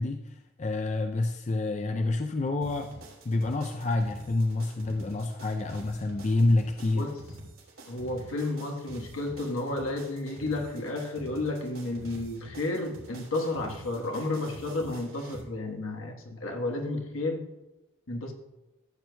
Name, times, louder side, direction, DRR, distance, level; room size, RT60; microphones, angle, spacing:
voice 1, 0.0-2.9 3.3-7.1 16.3-16.4, left 2 dB, 35° left, 4 dB, 0.4 m, -28 dB
sound 1, 2.6-15.4, right 1 dB, 90° right, 2.7 m, -47 dB
voice 2, 7.9-17.4 18.1-18.3, left 2 dB, 80° left, 2 dB, 1.3 m, -32 dB
13.5 x 7.8 x 2.3 m, 1.0 s
head